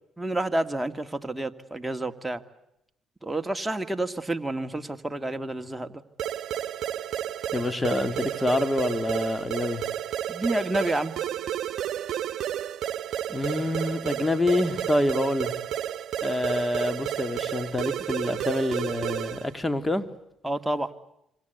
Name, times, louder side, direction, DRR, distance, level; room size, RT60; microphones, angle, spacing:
voice 1, 0.2-2.4 3.2-5.9 10.3-11.1 20.4-20.9, right 1 dB, 10° right, 2.1 m, -29 dB
sound 1, 6.2-19.5, right 11 dB, 65° right, 1.0 m, -32 dB
voice 2, 7.5-9.9 13.3-15.5 16.2-20.0, left 1 dB, 15° left, 2.5 m, -27 dB
26.5 x 25.5 x 8.2 m
supercardioid pair, 65°, 0 cm